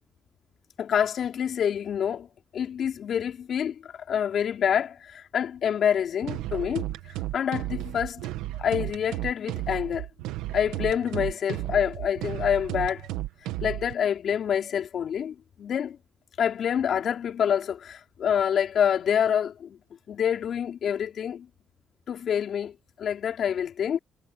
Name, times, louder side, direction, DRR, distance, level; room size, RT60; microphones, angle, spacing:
voice 1, 0.8-2.3 2.5-8.3 8.5-10.1 10.5-13.1 13.6-16.0 16.4-19.8 20.1-21.5 22.1-22.7 23.0-24.0, left 8 dB, 65° left, 4.6 m, -27 dB
sound 1, 6.2-13.9, right 15 dB, 90° right, 1.5 m, -33 dB
supercardioid pair, 65°, 0 cm